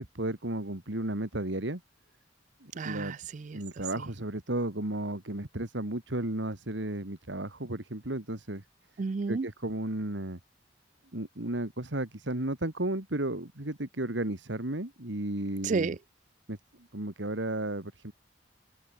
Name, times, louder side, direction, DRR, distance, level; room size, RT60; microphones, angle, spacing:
voice 1, 0.0-1.8 2.6-3.1 3.5-8.6 9.3-10.4 11.1-16.0 16.5-18.1, right 1 dB, 80° right, 2.5 m, -34 dB
voice 2, 2.8-3.6 9.0-9.5 15.6-16.0, right 4 dB, 45° right, 0.4 m, -31 dB
open air
head